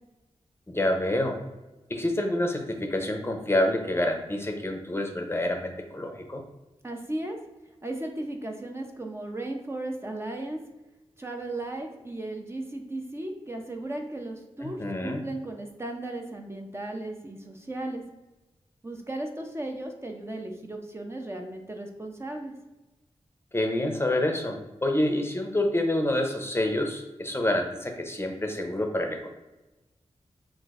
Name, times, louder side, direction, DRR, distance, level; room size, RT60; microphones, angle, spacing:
voice 1, 0.7-1.4 1.9-6.4 14.6-15.2 23.5-29.3, left 1 dB, 20° left, 4 dB, 0.6 m, -27 dB
voice 2, 6.8-7.4 7.8-10.6 11.2-18.0 18.8-22.5, right 1 dB, 25° right, 2 dB, 0.5 m, -36 dB
5.9 x 2.5 x 2.4 m, 1.0 s
wide cardioid pair, 70°, 11 cm